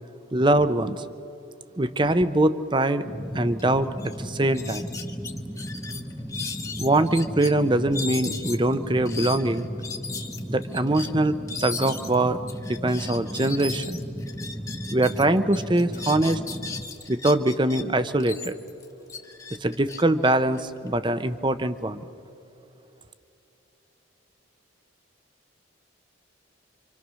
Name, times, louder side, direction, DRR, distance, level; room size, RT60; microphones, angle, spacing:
voice 1, 0.3-1.0 1.8-3.1 3.3-4.9 6.8-9.7 10.5-14.0 14.9-16.4 17.1-18.5 19.6-22.0, right 1 dB, 25° right, 12 dB, 0.7 m, -23 dB
sound 1, 3.0-16.8, equal, ahead, 1.1 m, -36 dB
sound 2, 3.6-3.7 4.0-4.2 4.5-7.5 7.9-15.2 15.5-17.8 18.2-21.1, left 4 dB, 15° left, 1.2 m, -37 dB
27.5 x 26.0 x 6.3 m, 2.9 s
head